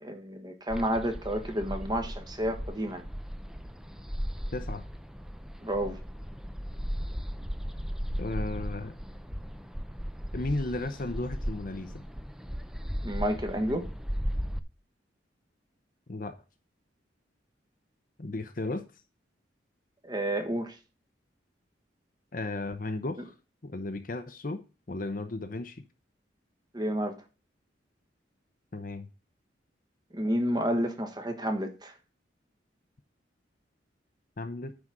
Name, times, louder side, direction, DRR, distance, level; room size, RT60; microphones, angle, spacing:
voice 1, 0.0-3.0 5.6-6.0 13.0-13.9 20.0-20.7 26.7-27.1 30.1-31.9, equal, 20° right, 1.2 m, -30 dB
sound 1, 0.7-14.6, equal, 5° right, 0.5 m, -36 dB
voice 2, 4.5-4.8 8.2-9.0 10.3-12.0 16.1-16.3 18.2-18.8 22.3-23.4 23.6-25.8 28.7-29.1 34.4-34.7, left 2 dB, 45° left, 0.7 m, -34 dB
9.7 x 4.0 x 6.2 m
head